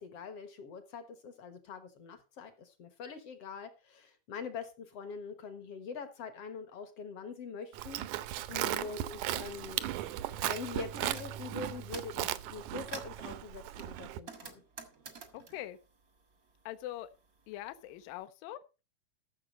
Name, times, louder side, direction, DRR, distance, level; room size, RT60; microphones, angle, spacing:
voice 1, 0.0-8.0 8.8-9.9 10.3-14.6, left 5 dB, 60° left, 9 dB, 1.7 m, -44 dB
Livestock farm animals working animals, 7.7-14.2, right 13 dB, 80° right, 1.8 m, -37 dB
voice 2, 8.5-8.9 15.3-15.8 16.7-17.1 17.5-18.6, left 14 dB, 75° left, 11 dB, 2.2 m, -43 dB
sound 1, 10.8-11.3 11.7-12.2 12.6-13.2 13.8-16.7 17.0-18.1, right 5 dB, 60° right, 0.9 m, -48 dB
13.5 x 6.9 x 5.1 m, 0.31 s
omnidirectional pair, 4.4 m